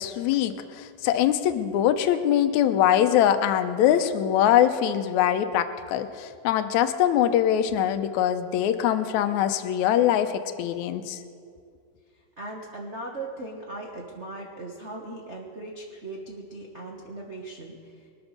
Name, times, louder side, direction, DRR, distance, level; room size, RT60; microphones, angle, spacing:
voice 1, 0.0-11.2, left 10 dB, 75° left, 8 dB, 2.0 m, -23 dB
voice 2, 12.4-18.1, right 2 dB, 80° right, -1 dB, 0.6 m, -38 dB
24.0 x 8.0 x 6.6 m, 2.2 s
omnidirectional pair, 3.7 m